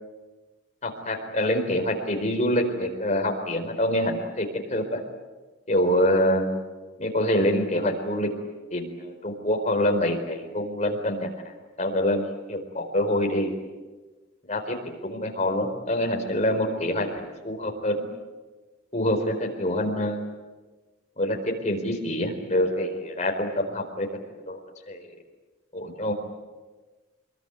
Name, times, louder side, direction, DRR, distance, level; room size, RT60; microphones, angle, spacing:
voice 1, 0.8-5.0 5.7-6.5 7.0-8.3 8.7-11.3 11.8-13.5 14.5-14.8 15.0-18.1 18.9-20.2 21.2-24.1 24.5-24.6 24.9-25.1 25.7-26.1, left 1 dB, 35° left, 3 dB, 4.4 m, -26 dB
25.5 x 22.5 x 9.5 m, 1.3 s
head